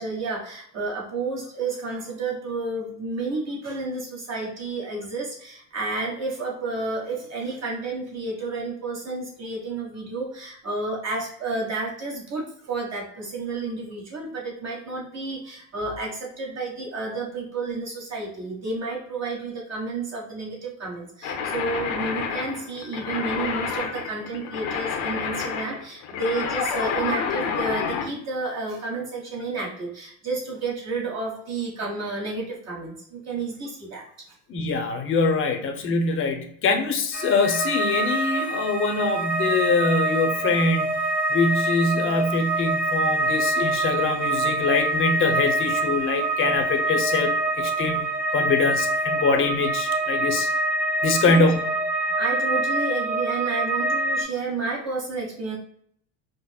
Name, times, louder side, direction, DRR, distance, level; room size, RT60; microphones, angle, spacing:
voice 1, 0.0-34.1 51.2-51.5 52.2-55.6, right 3 dB, 40° right, -3 dB, 1.3 m, -31 dB
sound 1, 21.2-28.1, left 6 dB, 85° left, 0.8 m, -29 dB
voice 2, 34.5-48.0 48.3-50.5 51.0-51.6, left 4 dB, 30° left, 4 dB, 0.6 m, -24 dB
sound 2, 37.1-54.2, right 2 dB, 5° right, 0.8 m, -25 dB
5.1 x 2.0 x 2.2 m, 0.65 s
supercardioid pair, 120°, 39 cm